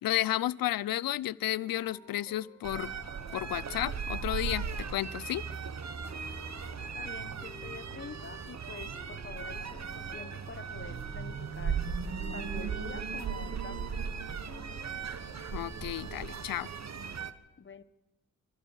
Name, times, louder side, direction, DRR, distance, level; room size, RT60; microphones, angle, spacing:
voice 1, 0.0-2.9 3.3-5.4 15.5-16.7, left 14 dB, 85° left, 20 dB, 0.6 m, -32 dB
sound 1, 1.6-16.4, left 2 dB, 5° left, 6.5 m, -55 dB
sound 2, 2.6-17.3, right 6 dB, 50° right, 1.3 m, -37 dB
voice 2, 6.8-11.8 12.3-13.8 17.6-17.8, left 5 dB, 35° left, 14 dB, 1.2 m, -47 dB
24.0 x 15.5 x 7.1 m, 1.0 s
cardioid pair, 60°, 34 cm